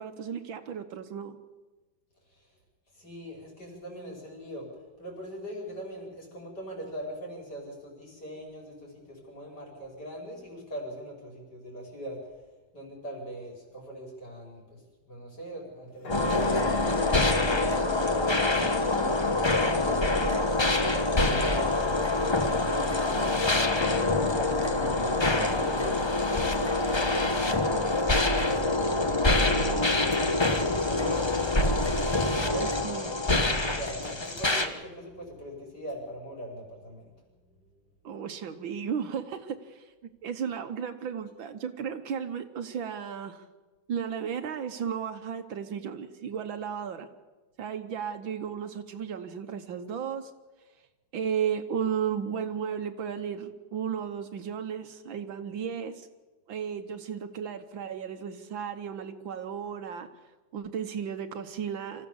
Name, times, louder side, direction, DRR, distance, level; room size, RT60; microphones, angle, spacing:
voice 1, 0.0-1.4 32.4-33.2 38.0-39.8 40.2-43.5 43.9-47.1 47.6-50.3 51.1-56.1 56.5-60.1 60.5-62.1, right 7 dB, 70° right, 9 dB, 1.8 m, -34 dB
voice 2, 2.9-4.7 5.0-12.2 12.7-14.8 15.1-19.2 19.6-23.5 24.1-25.3 25.5-28.0 28.5-31.3 31.7-37.1, equal, 50° left, -1 dB, 6.0 m, -41 dB
sound 1, 16.0-20.7 21.4-21.5 23.6-26.2, left 3 dB, 80° left, 3.5 m, -39 dB
sound 2, 16.1-34.7, left 2 dB, 20° left, 0.8 m, -25 dB
25.5 x 14.5 x 7.2 m, 1.2 s
omnidirectional pair, 2.3 m